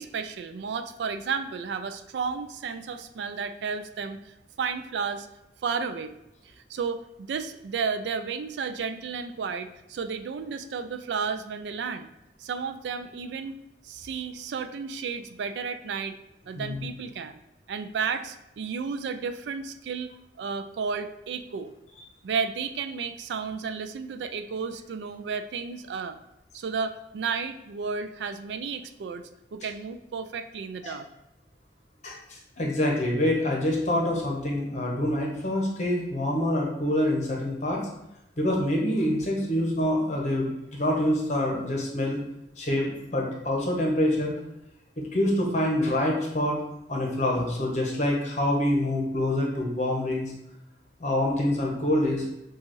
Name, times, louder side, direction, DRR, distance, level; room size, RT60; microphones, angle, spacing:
voice 1, 0.0-5.3 5.6-6.1 6.6-12.1 12.4-13.6 13.8-16.2 16.5-17.4 17.7-20.1 20.4-21.7 22.2-26.2 26.5-29.2 29.5-31.1, right 5 dB, 75° right, 9 dB, 0.3 m, -32 dB
voice 2, 16.6-16.9 30.8-31.0 32.0-37.8 38.4-42.2 42.6-44.4 45.0-46.6 46.9-50.3 51.0-52.3, left 1 dB, 40° left, -1 dB, 1.0 m, -26 dB
6.5 x 2.4 x 3.1 m, 0.88 s
head